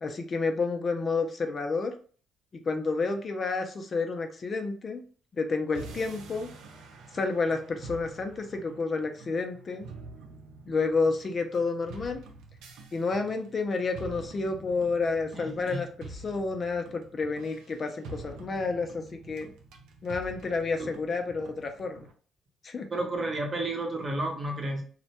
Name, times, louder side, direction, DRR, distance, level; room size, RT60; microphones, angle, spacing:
voice 1, 0.0-1.9 2.5-5.0 5.3-6.5 7.1-9.9 10.7-12.2 12.9-19.5 20.0-22.1 22.6-22.9, left 4 dB, 40° left, 5 dB, 0.4 m, -30 dB
sound 1, 5.7-22.1, right 3 dB, 85° right, 0.4 m, -47 dB
voice 2, 15.3-15.8 20.8-20.9 22.9-24.8, right 2 dB, 35° right, 2 dB, 0.7 m, -31 dB
2.1 x 2.1 x 2.8 m, 0.43 s
cardioid pair, 90°, 0 cm